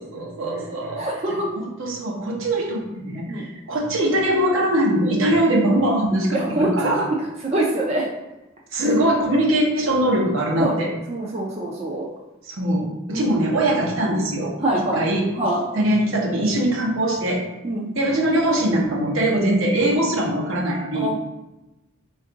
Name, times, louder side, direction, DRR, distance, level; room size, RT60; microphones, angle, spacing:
voice 1, 0.0-7.1 8.7-10.9 12.4-14.5 14.9-15.2 15.7-17.4 18.0-21.1, right 1 dB, 70° right, -1 dB, 0.8 m, -22 dB
voice 2, 1.0-1.5 3.3-3.5 6.3-7.1 7.4-8.1 8.8-8.9 10.6-10.7 11.1-12.1 13.1-13.4 14.6-15.1 15.3-15.6 17.6-17.9 20.9-21.1, right 1 dB, 30° right, -3 dB, 0.4 m, -24 dB
3.3 x 2.5 x 3.8 m, 1.0 s
head